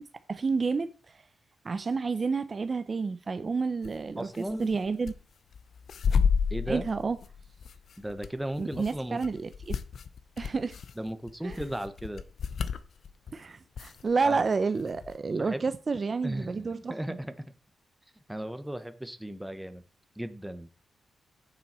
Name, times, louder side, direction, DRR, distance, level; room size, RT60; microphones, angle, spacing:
voice 1, 0.3-0.9 1.6-5.1 6.7-7.2 8.6-9.8 10.4-10.8 11.4-11.6 13.3-17.2, right 4 dB, 35° right, 0.6 m, -30 dB
sound 1, 3.8-4.0 4.3-5.1 5.5-13.3 13.8-14.5 14.8-15.2, left 6 dB, 65° left, 0.8 m, -31 dB
voice 2, 4.2-4.7 6.5-6.8 8.0-9.2 11.0-12.2 14.2-14.4 15.3-15.7 16.2-17.3 18.3-19.8 20.2-20.7, right 1 dB, 5° right, 0.9 m, -36 dB
9.4 x 7.6 x 4.3 m
cardioid pair, 110°, 0 cm